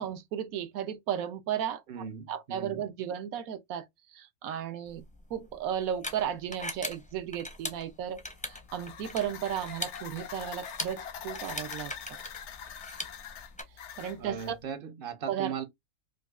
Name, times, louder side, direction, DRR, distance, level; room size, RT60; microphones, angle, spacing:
voice 1, 0.0-1.8 2.3-3.9 4.1-5.0 5.3-12.2 14.0-14.6 15.3-15.6, right 9 dB, 80° right, 1.1 m, -34 dB
voice 2, 1.9-2.8 14.2-15.6, right 7 dB, 55° right, 0.6 m, -38 dB
sound 1, 4.9-13.6, left 1 dB, 10° left, 0.4 m, -41 dB
sound 2, 8.3-14.6, left 8 dB, 65° left, 0.8 m, -44 dB
5.0 x 2.3 x 2.3 m
omnidirectional pair, 1.5 m